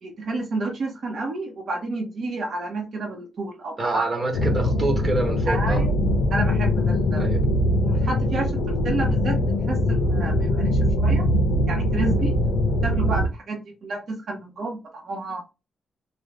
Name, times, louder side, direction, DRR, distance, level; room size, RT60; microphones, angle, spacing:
voice 1, 0.0-4.1 5.5-5.9 6.3-7.2 7.8-9.4 9.7-11.3 11.7-12.3 12.8-15.5, right 2 dB, 50° right, 0.8 m, -30 dB
voice 2, 3.8-5.9 7.2-7.4, right 2 dB, 25° right, 1.0 m, -26 dB
sound 1, 4.3-13.3, left 1 dB, 85° left, 0.6 m, -22 dB
3.3 x 2.1 x 3.7 m
wide cardioid pair, 160°, 0 cm